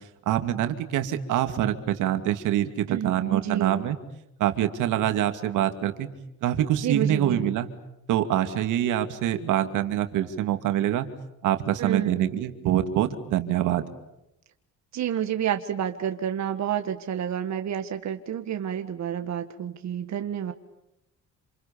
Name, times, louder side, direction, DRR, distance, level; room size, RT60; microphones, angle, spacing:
voice 1, 0.3-4.0 4.4-6.1 6.4-7.7 8.1-11.1 11.4-13.8, right 11 dB, 90° right, 8 dB, 2.5 m, -25 dB
voice 2, 2.9-3.8 6.8-7.5 11.8-12.3 14.9-20.5, right 9 dB, 65° right, 7 dB, 1.7 m, -29 dB
28.5 x 27.0 x 7.1 m, 0.89 s
cardioid pair, 90°, 30 cm